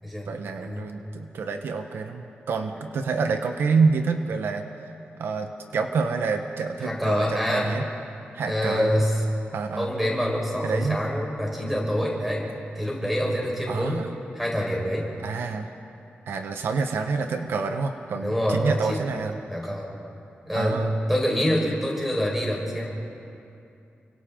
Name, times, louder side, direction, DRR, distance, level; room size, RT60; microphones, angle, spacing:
voice 1, 0.3-4.6 5.2-7.9 8.3-9.0 9.5-9.9 10.6-11.0 13.7-14.1 15.2-15.7 16.3-19.4 20.5-21.0, right 4 dB, 80° right, 5 dB, 1.1 m, -27 dB
voice 2, 6.8-7.8 8.4-9.2 9.7-12.5 12.7-14.0 14.3-15.1 18.2-19.0 19.5-19.9 20.5-22.9, equal, 5° right, -3 dB, 4.8 m, -26 dB
29.5 x 24.5 x 3.8 m, 2.6 s
wide cardioid pair, 165°, 4 cm